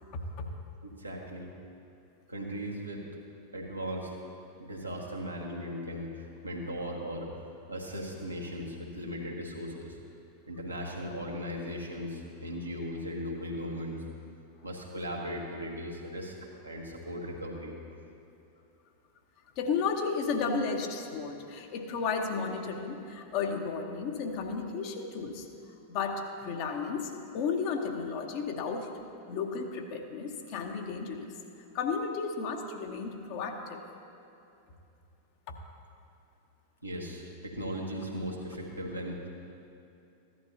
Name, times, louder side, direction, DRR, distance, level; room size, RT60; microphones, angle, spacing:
voice 1, 0.1-0.5 19.6-25.5 25.9-28.9 29.3-31.3 31.7-33.8 35.5-35.6, left 5 dB, 45° left, 3 dB, 1.1 m, -33 dB
voice 2, 0.8-1.5 2.3-3.0 3.5-4.2 4.6-7.3 7.7-10.0 10.5-14.0 14.6-16.3 16.6-17.7 36.8-39.2, equal, 85° right, -2 dB, 1.5 m, -37 dB
15.0 x 11.0 x 2.8 m, 2.7 s
figure-of-eight pair, 90°, 0 cm